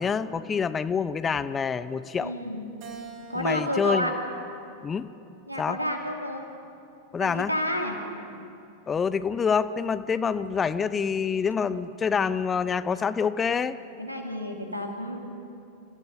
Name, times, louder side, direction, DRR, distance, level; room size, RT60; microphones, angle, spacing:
voice 1, 0.0-2.3 3.3-4.1 4.8-5.1 5.6-5.8 7.1-7.5 8.9-13.8, left 6 dB, 20° left, 14 dB, 0.7 m, -26 dB
voice 2, 2.2-2.7 3.3-4.1 5.5-6.4 7.2-8.0 14.0-15.2, equal, 90° right, 2 dB, 2.6 m, -30 dB
Keyboard (musical), 2.8-5.3 5.9-7.1, right 4 dB, 40° right, 3.1 m, -48 dB
27.5 x 15.5 x 8.2 m, 2.6 s
figure-of-eight pair, 90°, 0 cm